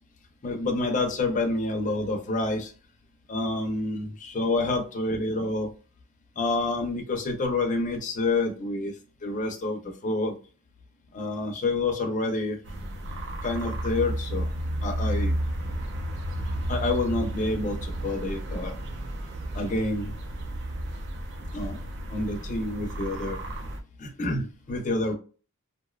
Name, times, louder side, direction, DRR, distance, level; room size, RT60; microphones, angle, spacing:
voice 1, 0.4-2.7 3.3-5.7 6.4-10.4 11.1-12.6 13.1-14.5 14.8-15.3 16.7-18.8 19.5-20.1 21.5-23.4 24.0-25.1, left 2 dB, 35° left, 4 dB, 0.5 m, -28 dB
sound 1, 12.6-23.8, right 1 dB, 55° right, 0.5 m, -32 dB
2.6 x 2.2 x 2.2 m, 0.37 s
head